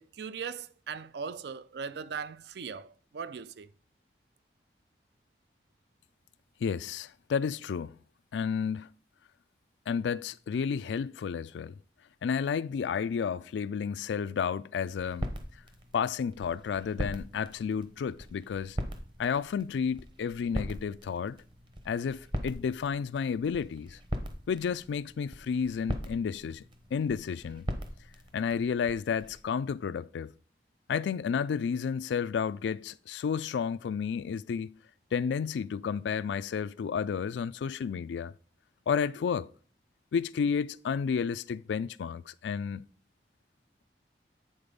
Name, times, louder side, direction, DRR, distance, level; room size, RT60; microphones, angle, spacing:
voice 1, 0.0-3.7, right 6 dB, 70° right, 0.4 m, -39 dB
voice 2, 6.6-8.0 8.3-8.9 9.9-11.8 12.2-15.3 15.9-18.8 19.2-21.4 21.9-24.0 24.5-26.6 26.9-27.7 28.3-30.3 30.9-34.8 35.1-38.3 38.9-39.5 40.1-42.8, left 6 dB, 85° left, 0.3 m, -31 dB
sound 1, 14.8-29.4, equal, 25° right, 0.8 m, -40 dB
8.6 x 4.1 x 5.2 m
head